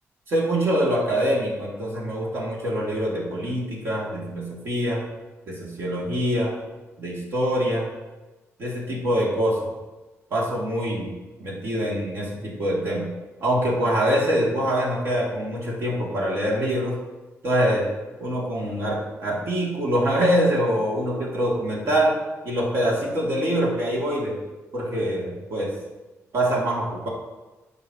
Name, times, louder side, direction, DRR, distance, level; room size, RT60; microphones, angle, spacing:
voice 1, 0.3-5.0 5.5-6.5 7.0-7.9 8.6-9.6 10.3-11.1 11.4-13.0 13.4-17.0 17.4-17.8 18.2-22.1 22.4-24.3 24.7-25.7 26.3-27.1, equal, 55° right, -4 dB, 2.7 m, -24 dB
15.0 x 5.7 x 3.0 m, 1.1 s
wide cardioid pair, 170°, 5 cm